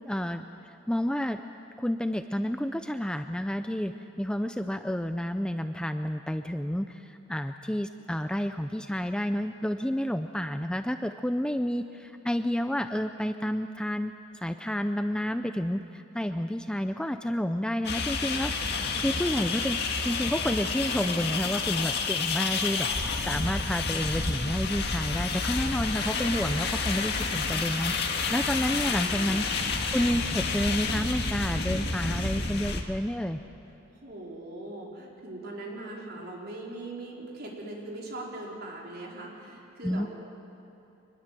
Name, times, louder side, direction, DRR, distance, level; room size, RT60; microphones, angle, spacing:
voice 1, 0.0-1.4 1.8-19.8 20.0-29.5 29.9-33.4 39.8-40.1, equal, 5° left, 8 dB, 0.5 m, -30 dB
sound 1, 17.8-32.8, left 4 dB, 55° left, 2.0 m, -29 dB
voice 2, 28.9-29.9 34.0-40.1, right 2 dB, 50° right, -2 dB, 4.4 m, -41 dB
24.5 x 21.0 x 7.7 m, 2.9 s
head